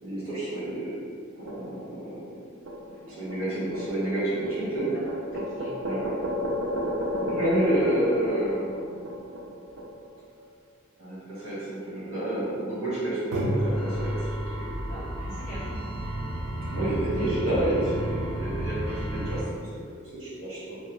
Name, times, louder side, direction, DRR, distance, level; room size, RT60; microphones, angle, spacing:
voice 1, 0.0-0.9 1.4-2.3 3.1-4.9 5.8-6.4 7.2-9.0 11.0-15.0 16.6-20.8, right 1 dB, 70° right, -9 dB, 1.2 m, -30 dB
sound 1, 1.5-2.1 2.7-10.1 13.3-19.4, equal, 85° right, 0.4 m, -32 dB
voice 2, 2.9-3.4 5.0-5.8 14.9-15.9, equal, 40° left, -12 dB, 0.6 m, -44 dB
2.3 x 2.2 x 3.0 m, 2.1 s
head